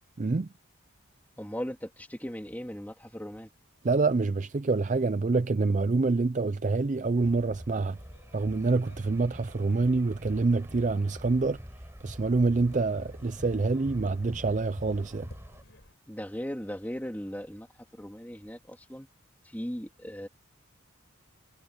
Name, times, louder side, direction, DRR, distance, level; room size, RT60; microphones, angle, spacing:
voice 1, 0.2-0.5 3.8-8.0 8.3-11.6 12.0-15.3, right 3 dB, 35° right, 0.4 m, -26 dB
voice 2, 1.4-3.5 16.1-17.7 17.9-19.1 19.4-20.3, equal, 10° left, 2.8 m, -38 dB
sound 1, 5.7-15.9, left 1 dB, 55° left, 7.9 m, -58 dB
sound 2, 7.1-15.6, equal, 10° right, 5.8 m, -46 dB
head